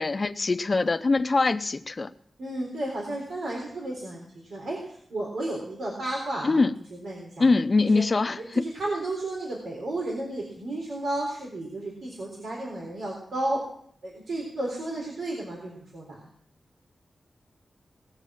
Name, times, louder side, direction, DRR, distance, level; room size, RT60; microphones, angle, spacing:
voice 1, 0.0-2.1 6.4-6.7 7.4-8.6, left 3 dB, 35° left, 11 dB, 0.6 m, -23 dB
voice 2, 2.4-4.2 4.5-6.6 6.9-7.5 7.8-8.0 8.3-13.6 14.0-16.3, right 1 dB, 85° right, -2 dB, 3.8 m, -33 dB
19.0 x 7.4 x 7.5 m, 0.65 s
wide cardioid pair, 165°, 0 cm